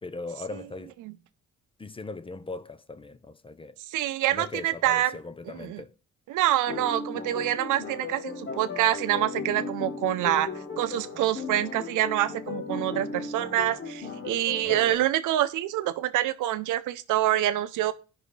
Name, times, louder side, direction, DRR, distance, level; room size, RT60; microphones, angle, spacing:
voice 1, 0.0-1.0 1.8-3.8 4.3-6.0 14.6-15.0, left 3 dB, 20° left, 0.5 m, -39 dB
voice 2, 3.9-5.1 5.5-5.8 6.3-10.5 10.8-17.9, right 13 dB, 85° right, 0.7 m, -26 dB
sound 1, 6.7-15.0, left 4 dB, 40° left, 1.4 m, -36 dB
14.0 x 5.6 x 3.3 m
cardioid pair, 90°, 30 cm